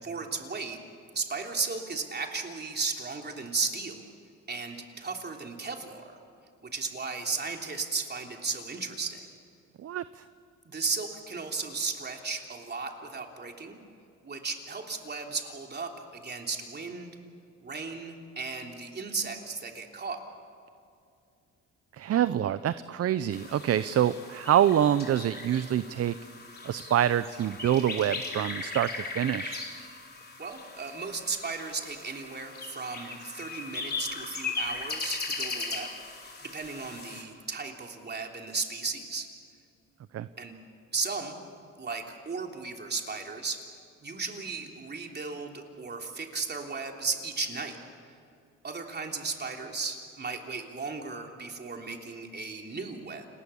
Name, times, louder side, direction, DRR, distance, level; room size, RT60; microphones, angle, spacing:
voice 1, 0.0-0.8 1.1-4.0 4.5-6.2 6.6-9.3 10.6-13.8 14.2-17.2 17.6-20.2 23.8-24.0 30.4-35.9 36.4-39.3 40.4-40.6 40.9-41.4 41.8-43.6 44.0-47.8 48.6-53.3, right 4 dB, 35° right, 2 dB, 3.4 m, -35 dB
voice 2, 9.8-10.2 22.0-26.2 26.6-29.6 40.1-40.3, right 10 dB, 55° right, 14 dB, 0.7 m, -26 dB
sound 1, 23.3-37.2, left 3 dB, 30° left, 4.1 m, -38 dB
29.0 x 20.5 x 7.2 m, 2.4 s
cardioid pair, 90°, 30 cm